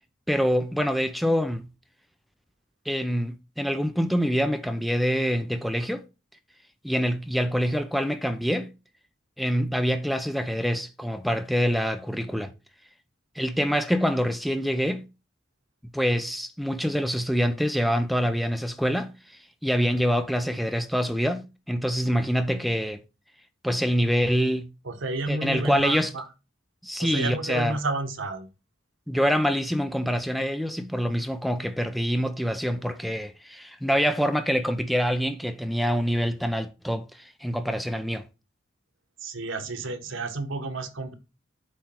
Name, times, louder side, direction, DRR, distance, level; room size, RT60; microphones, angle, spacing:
voice 1, 0.3-1.7 2.9-6.1 6.8-8.7 9.4-12.5 13.4-15.0 15.9-19.1 19.6-23.0 23.6-24.7 25.3-26.1 26.8-27.8 29.1-38.2, equal, ahead, 0.5 m, -25 dB
voice 2, 24.8-26.2 27.0-28.5 39.2-41.1, right 2 dB, 80° right, 1.2 m, -31 dB
8.1 x 3.2 x 6.0 m
head